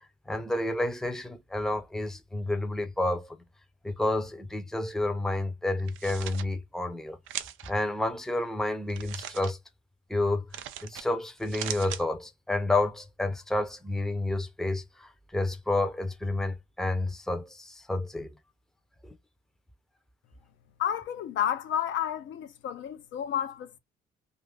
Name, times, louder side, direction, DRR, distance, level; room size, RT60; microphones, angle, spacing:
voice 1, 0.3-3.4 3.8-7.2 7.7-9.6 10.1-18.3 19.0-19.2, left 2 dB, ahead, 0.6 m, -30 dB
sound 1, 5.8-6.4 7.3-7.7 8.9-9.5 10.5-11.0 11.4-12.0, right 11 dB, 85° right, 0.5 m, -38 dB
voice 2, 20.8-23.8, left 10 dB, 70° left, 0.6 m, -31 dB
2.5 x 2.5 x 3.4 m
cardioid pair, 90°, 20 cm